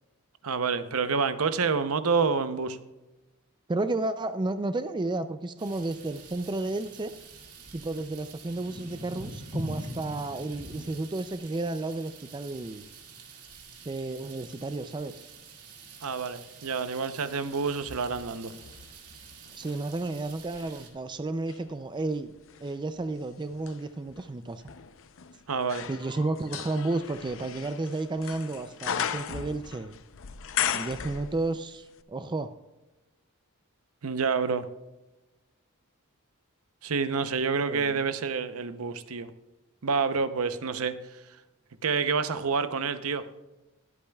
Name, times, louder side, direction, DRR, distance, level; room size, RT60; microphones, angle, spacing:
voice 1, 0.4-2.8 16.0-18.5 25.5-25.9 34.0-34.6 36.8-39.3 39.8-41.2 41.8-43.3, right 5 dB, 70° right, 11 dB, 0.7 m, -28 dB
voice 2, 3.7-7.1 7.7-12.8 13.9-15.2 19.6-22.3 22.6-24.6 25.9-30.0 30.7-32.5 37.7-38.0, right 2 dB, 20° right, 10 dB, 0.4 m, -32 dB
sound 1, 5.6-20.9, right 2 dB, 90° right, 2.1 m, -45 dB
sound 2, 17.6-19.8 20.4-31.7 32.0-32.1, left 8 dB, 60° left, 0.6 m, -37 dB
21.5 x 8.6 x 2.3 m, 1.1 s
head